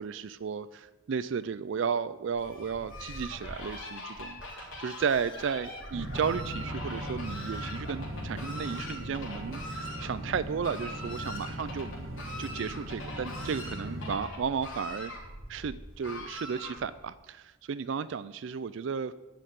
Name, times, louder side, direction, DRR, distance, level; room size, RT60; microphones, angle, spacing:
voice 1, 0.0-11.9 12.4-15.1 15.5-19.1, right 6 dB, 60° right, 15 dB, 0.4 m, -34 dB
Fowl, 2.3-17.1, left 1 dB, 65° left, 3.7 m, -42 dB
sound 1, 5.9-14.2, equal, 80° right, 1.2 m, -39 dB
10.5 x 6.5 x 9.1 m, 1.1 s
head